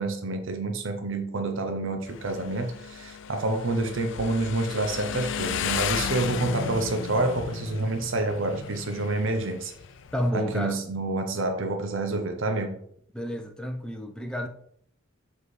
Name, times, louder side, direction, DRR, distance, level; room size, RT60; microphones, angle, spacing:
voice 1, 0.0-9.7 10.3-12.8, right 2 dB, 70° right, 0.7 m, -28 dB
Motorcycle, 2.1-10.3, left 7 dB, 60° left, 0.4 m, -34 dB
voice 2, 10.1-10.8 13.1-14.5, equal, 5° left, 0.5 m, -30 dB
7.2 x 4.1 x 3.2 m
head